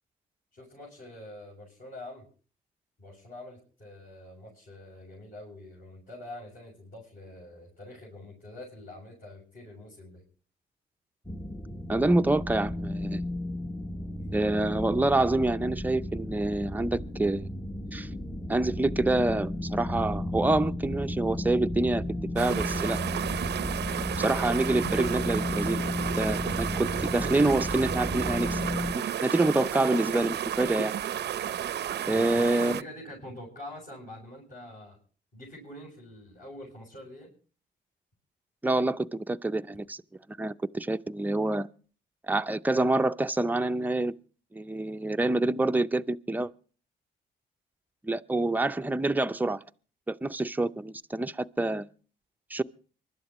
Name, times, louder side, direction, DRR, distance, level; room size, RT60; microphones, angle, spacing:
voice 1, 0.5-2.3 3.0-10.2 32.1-35.0 35.3-37.3, left 1 dB, 45° left, 7.2 m, -45 dB
sound 1, 11.2-28.9, left 1 dB, 10° left, 0.9 m, -33 dB
voice 2, 11.9-13.2 14.3-17.5 17.9-18.1 18.5-23.0 24.2-28.6 28.9-30.9 32.1-32.8 38.6-40.0 40.3-41.7 42.3-44.1 44.5-46.5 48.0-49.6 50.1-51.9 52.5-52.6, right 2 dB, 10° right, 0.6 m, -27 dB
sound 2, 22.4-32.8, right 10 dB, 55° right, 0.6 m, -32 dB
24.5 x 12.0 x 3.1 m
cardioid pair, 90°, 20 cm